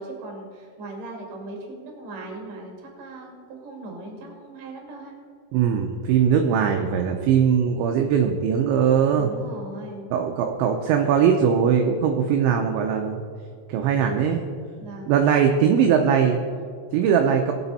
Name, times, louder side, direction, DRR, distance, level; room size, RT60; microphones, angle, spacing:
voice 1, 0.0-5.1 9.2-10.0 14.8-15.2, right 2 dB, 45° right, 0 dB, 2.8 m, -38 dB
voice 2, 5.5-9.3 10.1-13.2 13.7-14.4 15.1-16.4 16.9-17.5, right 7 dB, 80° right, 3 dB, 2.8 m, -20 dB
19.5 x 7.9 x 4.1 m, 2.2 s
omnidirectional pair, 5.7 m